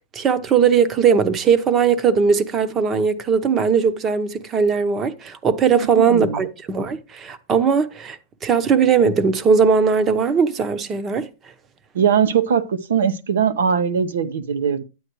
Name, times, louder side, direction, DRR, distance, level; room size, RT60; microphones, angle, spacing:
voice 1, 0.1-11.3, right 6 dB, 20° right, 0.8 m, -19 dB
voice 2, 5.9-6.5 11.9-14.8, right 7 dB, 85° right, 0.9 m, -20 dB
9.3 x 9.0 x 3.0 m
hypercardioid pair, 145°, 0 cm